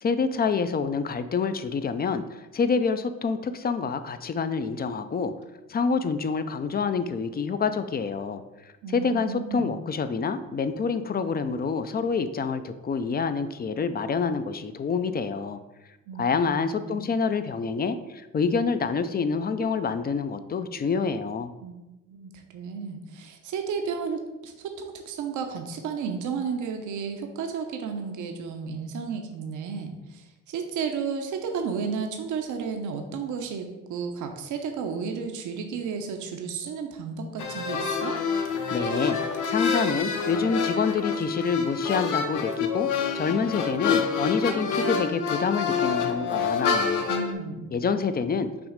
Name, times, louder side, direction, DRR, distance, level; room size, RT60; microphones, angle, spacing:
voice 1, 0.0-5.3 5.7-8.4 8.9-15.6 16.2-21.5 38.7-39.2 39.5-42.9 43.1-47.1 47.7-48.5, left 5 dB, 30° left, 10 dB, 0.4 m, -27 dB
voice 2, 8.8-9.7 16.1-17.0 21.6-21.8 22.1-38.2 47.1-47.7, right 6 dB, 80° right, 4 dB, 0.8 m, -33 dB
sound 1, 37.4-47.3, left 6 dB, 90° left, 0.8 m, -27 dB
6.0 x 3.1 x 5.1 m, 1.0 s
cardioid pair, 90°, 30 cm